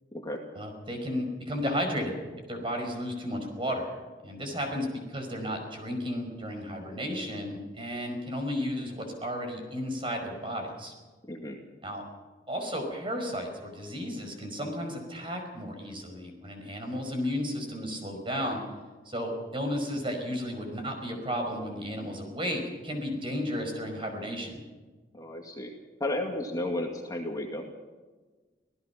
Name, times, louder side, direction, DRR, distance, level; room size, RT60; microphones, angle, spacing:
voice 1, 0.6-2.2 2.5-3.9 4.2-10.9 11.8-12.0 12.5-18.6 19.1-24.6, equal, 30° right, 4 dB, 5.2 m, -33 dB
voice 2, 25.1-25.7 26.0-27.7, left 1 dB, 20° left, 1 dB, 2.3 m, -33 dB
26.5 x 16.5 x 5.9 m, 1.3 s
head